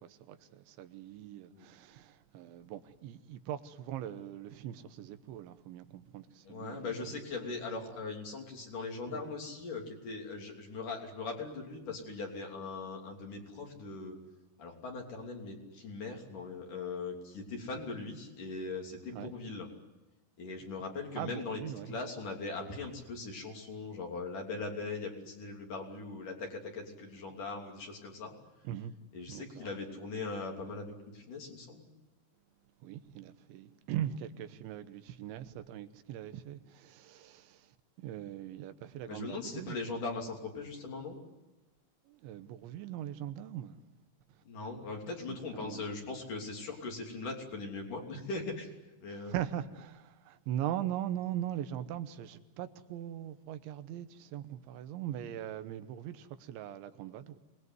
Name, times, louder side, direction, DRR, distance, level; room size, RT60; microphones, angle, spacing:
voice 1, 0.0-6.9 7.9-8.0 9.1-9.3 19.1-19.3 21.2-22.0 28.6-28.9 29.3-29.7 32.8-37.7 38.0-39.8 42.1-43.8 45.1-45.8 49.1-57.4, right 11 dB, 85° right, 3.4 m, -40 dB
voice 2, 6.5-14.2 14.6-19.7 20.4-28.3 29.1-31.9 39.1-41.2 44.4-48.7 49.0-49.3, left 3 dB, 50° left, 4.4 m, -40 dB
26.5 x 20.5 x 9.5 m
omnidirectional pair, 5.2 m